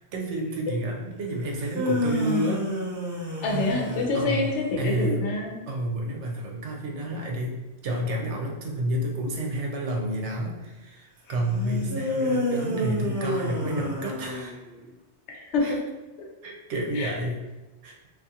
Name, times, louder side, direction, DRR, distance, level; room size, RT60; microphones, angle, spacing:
voice 1, 0.1-2.6 4.1-4.4 4.8-5.2 5.7-7.6 7.8-14.6 15.6-15.8 16.4-17.4 17.8-18.0, right 1 dB, 80° right, 0 dB, 0.9 m, -30 dB
sound 1, 1.5-4.7 11.9-14.8, left 1 dB, 20° right, 0.5 m, -29 dB
voice 2, 3.4-5.5 11.4-12.0 15.3-15.8 16.2-16.3 17.0-17.1, left 3 dB, 80° left, -1 dB, 0.9 m, -27 dB
2.5 x 2.4 x 2.7 m, 1.1 s
omnidirectional pair, 1.2 m